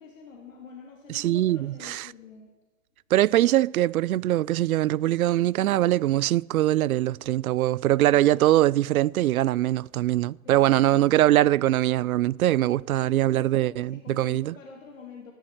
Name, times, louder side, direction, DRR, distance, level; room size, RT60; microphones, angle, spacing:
voice 1, 0.0-2.5 8.1-8.6 10.4-11.6 12.6-15.3, left 5 dB, 65° left, 2.9 m, -47 dB
voice 2, 1.1-2.0 3.1-14.5, right 14 dB, 80° right, 0.5 m, -22 dB
13.5 x 12.0 x 8.9 m
hypercardioid pair, 175°, 42 cm